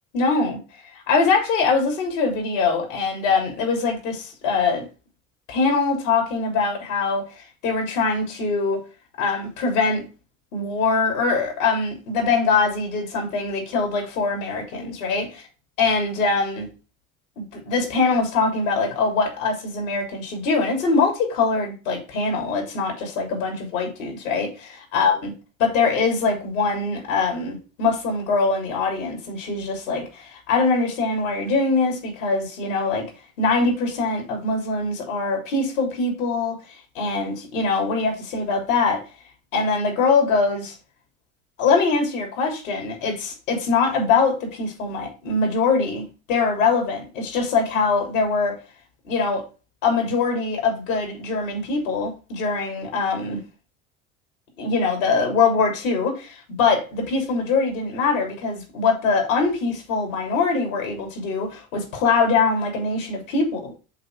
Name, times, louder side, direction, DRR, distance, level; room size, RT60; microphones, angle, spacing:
voice 1, 0.1-0.6 0.9-4.8 5.5-8.8 9.2-10.1 10.5-15.4 15.8-16.7 17.4-25.3 25.6-33.1 33.4-36.6 36.9-39.0 39.5-40.8 41.6-48.6 49.0-49.4 49.8-53.4 54.6-63.7, left 4 dB, 75° left, 3.4 m, -23 dB
7.8 x 3.9 x 4.6 m
hypercardioid pair, 75°, 40 cm